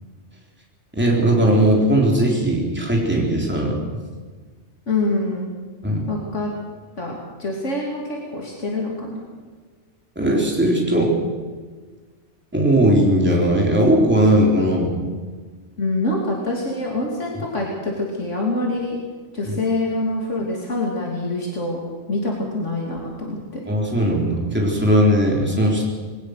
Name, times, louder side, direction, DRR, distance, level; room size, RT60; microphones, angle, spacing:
voice 1, 0.9-3.8 5.8-6.1 10.2-11.1 12.5-14.9 19.5-19.6 23.7-25.8, right 1 dB, 10° right, -2 dB, 3.7 m, -18 dB
voice 2, 4.9-5.5 6.1-6.5 7.0-7.1 7.4-9.2 15.8-19.0 19.3-21.8 22.1-23.6, left 2 dB, 75° left, -2 dB, 3.3 m, -25 dB
21.0 x 19.0 x 6.6 m, 1.4 s
omnidirectional pair, 1.3 m